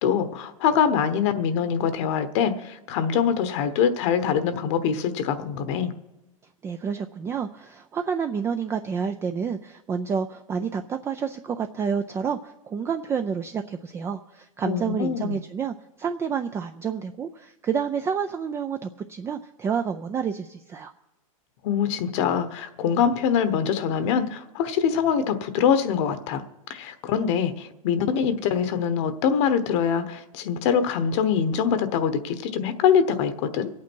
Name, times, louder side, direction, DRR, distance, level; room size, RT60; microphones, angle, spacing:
voice 1, 0.0-5.9 14.6-15.4 21.6-26.4 26.7-33.7, left 7 dB, 55° left, 11 dB, 1.1 m, -24 dB
voice 2, 6.6-20.9, right 6 dB, 15° right, 7 dB, 0.4 m, -29 dB
24.0 x 8.6 x 4.6 m, 1.0 s
supercardioid pair, 145°, 18 cm